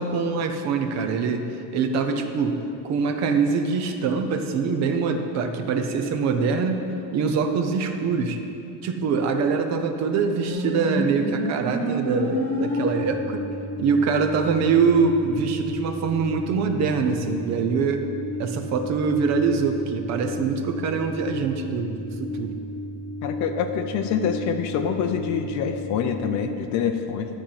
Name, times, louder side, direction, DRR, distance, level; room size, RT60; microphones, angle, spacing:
voice 1, 0.0-2.6 2.8-8.4 8.8-13.4 13.8-18.1 18.4-22.5, right 5 dB, 40° right, 6 dB, 0.6 m, -24 dB
sound 1, 10.5-26.4, equal, 5° left, 1.2 m, -32 dB
voice 2, 23.2-27.3, left 7 dB, 40° left, 7 dB, 0.5 m, -26 dB
12.0 x 4.4 x 7.6 m, 2.8 s
cardioid pair, 175°, 43 cm